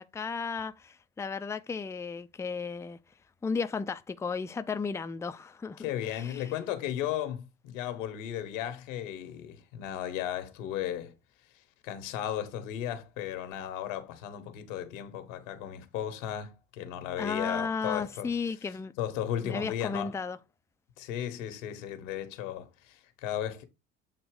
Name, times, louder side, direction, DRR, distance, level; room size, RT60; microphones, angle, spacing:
voice 1, 0.0-3.0 3.4-6.5 17.2-18.9 19.4-20.4, left 5 dB, 10° left, 0.4 m, -34 dB
voice 2, 5.8-11.1 11.8-18.3 19.0-20.2 21.0-23.6, left 10 dB, 75° left, 1.3 m, -35 dB
8.0 x 2.9 x 4.7 m
hypercardioid pair, 70°, 39 cm